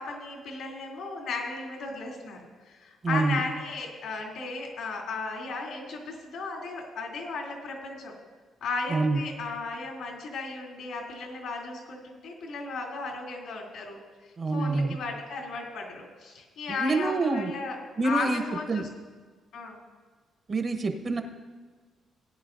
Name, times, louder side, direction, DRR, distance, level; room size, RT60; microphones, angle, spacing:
voice 1, 0.0-2.4 2.6-8.1 8.6-14.0 14.5-17.7 18.0-18.9 19.5-19.8, left 3 dB, 80° left, -2 dB, 3.1 m, -35 dB
voice 2, 3.0-3.4 8.9-9.2 14.4-14.9 16.7-17.5 18.0-18.4 18.7-18.8 20.5-21.2, right 3 dB, 40° right, 5 dB, 1.2 m, -26 dB
18.5 x 9.7 x 2.7 m, 1.4 s
cardioid pair, 90°, 0 cm